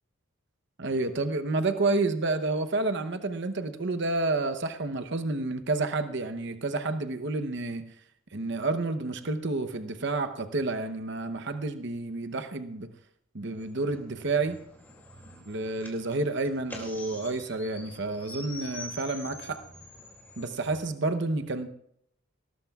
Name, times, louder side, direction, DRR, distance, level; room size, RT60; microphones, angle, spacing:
voice 1, 0.8-7.8 8.3-12.9 13.3-14.6 15.5-19.6 20.4-21.7, right 3 dB, 55° right, 9 dB, 0.8 m, -30 dB
sound 1, 13.4-20.8, left 1 dB, 10° left, 2.5 m, -46 dB
19.0 x 19.0 x 2.4 m, 0.71 s
head